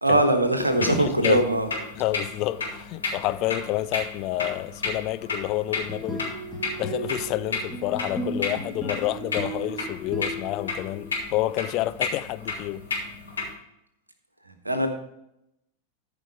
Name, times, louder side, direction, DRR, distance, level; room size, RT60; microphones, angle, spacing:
voice 1, 0.0-1.7 14.4-14.9, right 1 dB, 85° right, 1.3 m, -21 dB
sound 1, 0.6-13.5, left 4 dB, 70° left, 3.3 m, -33 dB
voice 2, 0.8-1.4 2.0-6.2 6.8-12.9, left 16 dB, 40° left, 0.4 m, -29 dB
sound 2, 5.7-11.2, right 1 dB, 5° left, 2.0 m, -35 dB
14.0 x 5.1 x 4.8 m
figure-of-eight pair, 90°, 0 cm